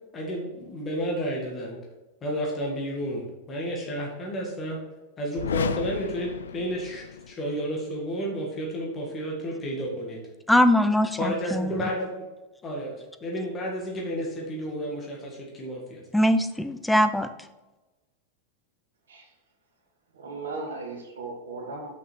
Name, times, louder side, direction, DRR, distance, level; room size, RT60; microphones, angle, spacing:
voice 1, 0.1-1.8 2.2-4.8 5.2-10.2 11.1-12.2 12.6-16.0, equal, 25° left, -2 dB, 1.9 m, -31 dB
sound 1, 5.3-7.4, left 7 dB, 70° left, 0.3 m, -33 dB
voice 2, 10.5-11.9 16.1-17.3, left 1 dB, 5° left, 10 dB, 0.5 m, -22 dB
voice 3, 20.1-21.9, right 3 dB, 65° right, 2 dB, 1.5 m, -36 dB
6.1 x 5.8 x 4.5 m, 1.1 s
figure-of-eight pair, 90°, 0 cm